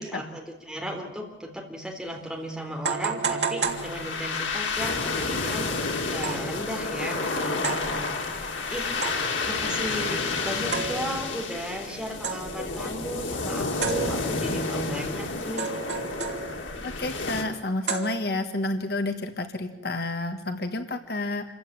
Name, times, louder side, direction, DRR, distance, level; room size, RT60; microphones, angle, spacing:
voice 1, 0.0-5.7 6.0-15.7, equal, 5° right, 1 dB, 3.7 m, -35 dB
sound 1, 1.9-2.0 2.8-4.5 6.2-6.6 7.6-8.0 9.0-9.4 10.7-11.3 12.2-12.7 13.8-14.6 15.6-16.8 17.9-18.6, right 5 dB, 65° right, 2.8 m, -32 dB
sound 2, 3.6-17.4, left 3 dB, 85° left, 3.2 m, -30 dB
voice 2, 16.8-21.4, left 2 dB, 55° left, 7 dB, 1.5 m, -30 dB
27.5 x 15.0 x 9.0 m, 1.0 s
head